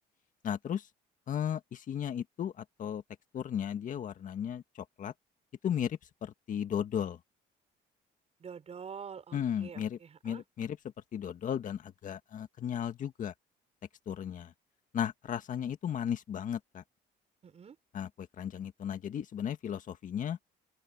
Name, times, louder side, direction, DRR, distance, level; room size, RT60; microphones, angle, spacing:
voice 1, 0.4-0.9 1.3-3.0 3.3-5.1 5.6-7.2 9.3-10.0 10.2-10.8 11.1-13.3 14.1-14.5 14.9-16.8 17.9-20.4, left 9 dB, 50° left, 1.8 m, -35 dB
voice 2, 8.4-10.4 17.4-17.8, right 6 dB, 40° right, 5.4 m, -46 dB
open air
cardioid pair, 110°, 17 cm